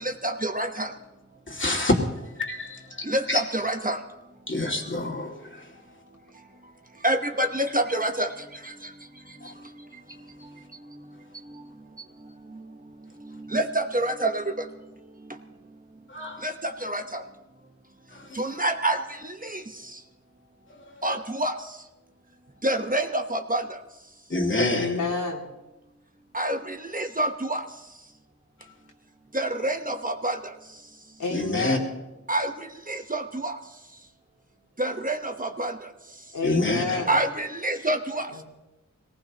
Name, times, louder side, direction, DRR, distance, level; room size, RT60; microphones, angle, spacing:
voice 1, 0.0-0.9 3.1-4.0 7.0-8.3 13.5-14.4 16.4-17.2 18.4-19.0 19.5-19.6 21.0-21.5 22.6-23.6 26.3-27.6 29.3-30.4 32.3-32.5 32.9-33.5 34.8-35.7 37.1-38.3, right 1 dB, 25° right, 6 dB, 1.1 m, -26 dB
voice 2, 1.5-2.0 2.4-2.8 3.3-3.4 4.5-5.3 16.1-16.4 18.3-18.4 24.3-24.9 31.3-31.8 36.4-37.0, left 2 dB, 40° left, 1 dB, 2.4 m, -26 dB
voice 3, 24.7-25.5 31.2-31.9 36.3-37.2 38.3-38.4, left 4 dB, 85° left, -2 dB, 2.7 m, -29 dB
22.5 x 18.5 x 3.0 m, 1.0 s
wide cardioid pair, 80°, 30 cm